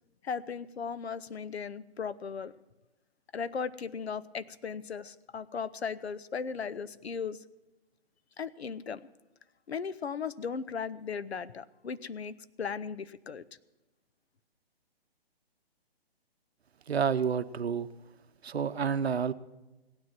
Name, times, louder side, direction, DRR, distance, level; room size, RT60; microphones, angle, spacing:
voice 1, 0.2-2.5 3.3-7.4 8.4-9.1 9.7-13.4, left 6 dB, 85° left, 15 dB, 0.7 m, -37 dB
voice 2, 16.9-17.9 18.4-19.3, right 7 dB, 80° right, 14 dB, 0.8 m, -29 dB
16.5 x 9.7 x 6.0 m, 1.1 s
hypercardioid pair, 140°, 31 cm